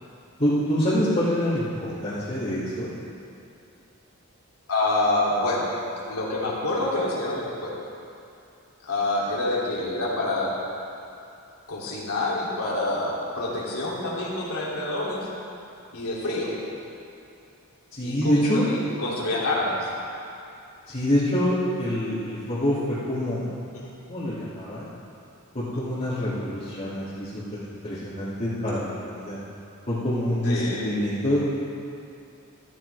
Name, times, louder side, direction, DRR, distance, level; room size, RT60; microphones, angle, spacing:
voice 1, 0.4-2.9 17.9-18.6 20.9-23.5 24.1-24.9 25.5-27.3 27.6-29.4 29.9-31.5, equal, 35° left, -13 dB, 2.4 m, -26 dB
voice 2, 4.7-5.7 6.0-7.7 8.8-10.5 11.7-15.3 15.9-16.5 18.0-19.9 23.7-23.9 25.7-25.9 30.4-30.8, left 2 dB, 80° left, -6 dB, 2.8 m, -27 dB
14.0 x 13.5 x 3.4 m, 2.6 s
head